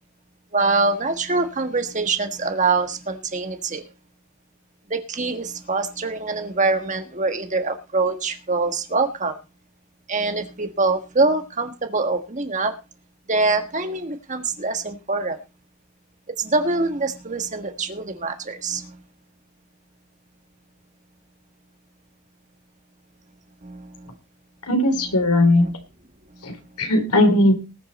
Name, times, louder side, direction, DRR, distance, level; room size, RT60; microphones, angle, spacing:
voice 1, 0.5-3.9 4.9-9.4 10.1-12.7 13.3-15.4 16.4-19.0 23.6-24.2 25.0-25.2 25.6-25.7 26.3-26.8, right 3 dB, 35° right, 7 dB, 1.5 m, -24 dB
voice 2, 24.7-25.7 26.4-27.5, left 1 dB, 90° left, 7 dB, 3.5 m, -18 dB
19.5 x 7.3 x 4.2 m, 0.30 s
head